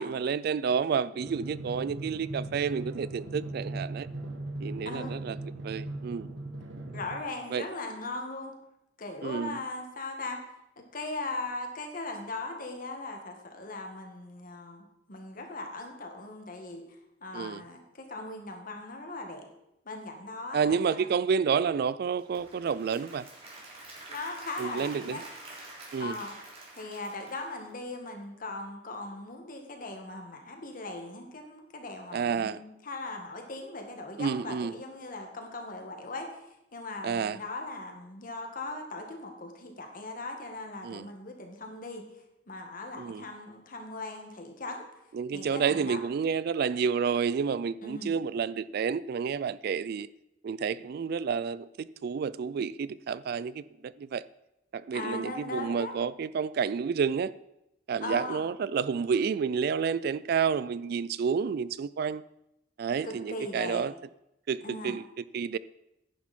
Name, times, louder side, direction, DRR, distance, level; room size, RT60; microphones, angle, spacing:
voice 1, 0.0-4.1 4.6-5.4 5.6-6.3 7.5-7.6 9.2-9.6 17.3-17.6 20.5-23.3 24.6-25.2 25.9-26.2 32.1-32.6 34.2-34.7 37.0-37.4 40.8-41.1 43.0-43.2 45.1-50.1 50.4-54.2 54.7-57.3 57.9-62.2 62.8-63.9 64.5-65.0 65.3-65.6, right 6 dB, 55° right, 0.3 m, -30 dB
Drum, 1.2-7.2, right 2 dB, 80° right, 1.5 m, -39 dB
voice 2, 6.9-8.5 9.0-10.4 10.8-16.8 17.2-19.5 19.8-21.1 24.1-25.2 26.0-26.3 26.7-36.4 36.7-42.0 42.5-45.0 45.3-46.0 47.8-48.1 54.9-55.9 58.0-58.4 63.0-63.8 64.6-65.0, left 2 dB, 50° left, 1.8 m, -39 dB
Applause / Crowd, 22.0-28.1, right 2 dB, 35° right, 3.2 m, -47 dB
10.5 x 10.0 x 4.3 m
head